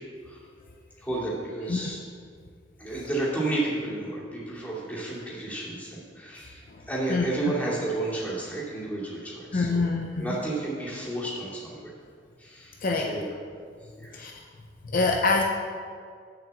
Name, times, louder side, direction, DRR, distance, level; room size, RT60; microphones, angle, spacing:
voice 1, 1.0-2.0 2.8-9.8 10.2-11.8 12.4-12.7 13.0-13.3 14.0-14.2, right 2 dB, 10° left, -8 dB, 2.6 m, -31 dB
voice 2, 7.1-7.5 9.5-10.4 12.8-13.2 14.0-14.4 14.8-15.4, left 3 dB, 50° left, 1 dB, 0.6 m, -26 dB
7.0 x 5.7 x 7.5 m, 2.1 s
head